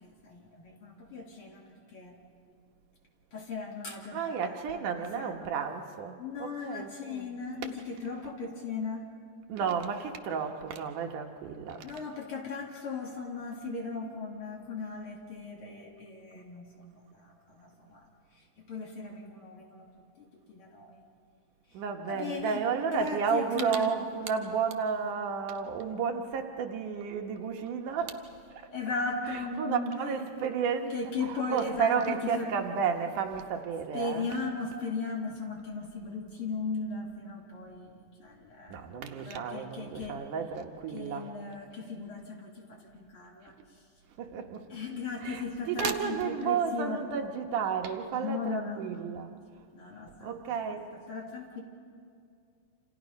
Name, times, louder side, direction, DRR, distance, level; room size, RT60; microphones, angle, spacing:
voice 1, 0.0-1.6 1.9-2.2 3.3-5.3 6.2-9.1 11.8-16.7 17.0-18.0 18.6-19.9 20.2-21.0 22.1-22.6 22.9-23.9 28.7-30.2 30.9-32.5 33.9-37.9 38.2-38.8 39.2-40.2 40.9-43.5 44.7-46.2 46.4-47.0 48.1-48.8 49.7-50.6 51.1-51.6, left 4 dB, 45° left, -1 dB, 3.1 m, -37 dB
voice 2, 4.1-7.3 9.5-11.9 21.7-28.2 28.5-28.7 29.3-30.9 31.3-34.3 38.7-41.3 44.2-44.7 45.2-49.3 50.1-50.9, right 6 dB, 75° right, 3 dB, 2.7 m, -32 dB
28.5 x 27.5 x 5.3 m, 2.3 s
omnidirectional pair, 3.8 m